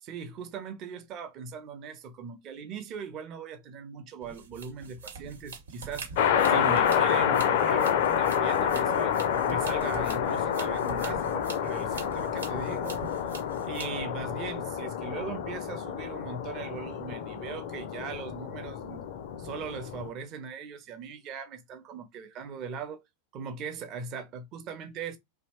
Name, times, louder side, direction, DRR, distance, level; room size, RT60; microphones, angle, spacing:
voice 1, 0.0-6.1 6.5-9.2 9.5-13.3 13.6-19.1 19.4-23.0 23.3-25.2, right 5 dB, 35° right, 0.6 m, -39 dB
sound 1, 4.2-14.0, right 4 dB, 70° right, 1.0 m, -45 dB
sound 2, 6.2-20.1, left 8 dB, 50° left, 0.4 m, -28 dB
2.7 x 2.1 x 2.9 m
figure-of-eight pair, 90°, 0 cm